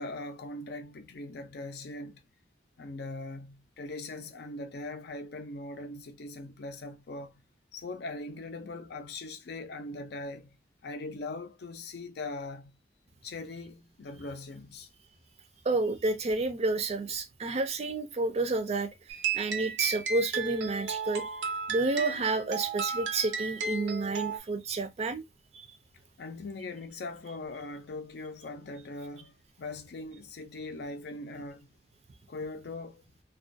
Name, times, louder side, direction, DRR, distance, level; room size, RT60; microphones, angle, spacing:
voice 1, 0.0-2.2 2.8-7.4 7.7-10.6 10.8-12.8 13.2-14.9 26.2-31.7 32.3-33.0, left 2 dB, 65° left, 0.5 m, -40 dB
voice 2, 15.7-18.9 19.3-21.3 21.7-25.2, right 3 dB, 40° right, 0.4 m, -30 dB
sound 1, 19.1-24.4, right 5 dB, 85° right, 0.5 m, -34 dB
2.3 x 2.2 x 2.4 m
head